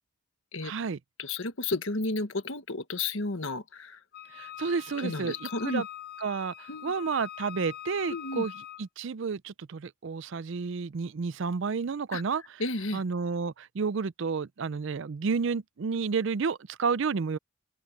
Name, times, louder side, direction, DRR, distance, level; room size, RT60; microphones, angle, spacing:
voice 1, 0.6-1.0 4.3-5.9 6.2-8.5 8.8-12.6 12.9-17.4, right 5 dB, 60° right, 0.5 m, -31 dB
voice 2, 1.2-4.0 5.0-5.8 6.7-6.9 8.1-8.4 12.1-12.2 12.6-13.0, left 2 dB, 65° left, 1.5 m, -32 dB
Wind instrument woodwind instrument, 4.1-8.8, left 11 dB, 45° left, 1.0 m, -43 dB
open air
head